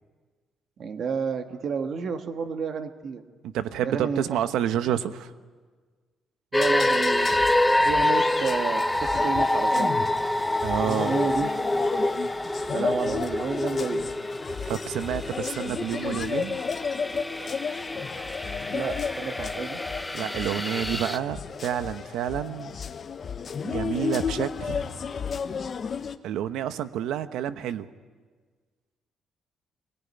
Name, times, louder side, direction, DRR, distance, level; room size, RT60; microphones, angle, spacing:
voice 1, 0.8-3.2 3.8-4.4 6.5-7.3 7.8-10.1 11.0-11.5 12.7-14.1 18.7-19.8, right 6 dB, 50° right, 7 dB, 1.5 m, -31 dB
voice 2, 3.4-5.3 10.6-11.1 14.7-16.6 20.1-22.7 23.6-25.0 26.2-27.9, right 10 dB, 85° right, 11 dB, 1.0 m, -29 dB
sound 1, 6.5-26.2, left 6 dB, 35° left, 1.0 m, -33 dB
sound 2, 6.5-21.2, left 1 dB, 5° left, 0.6 m, -27 dB
23.5 x 18.0 x 9.6 m, 1.5 s
cardioid pair, 150°, 0 cm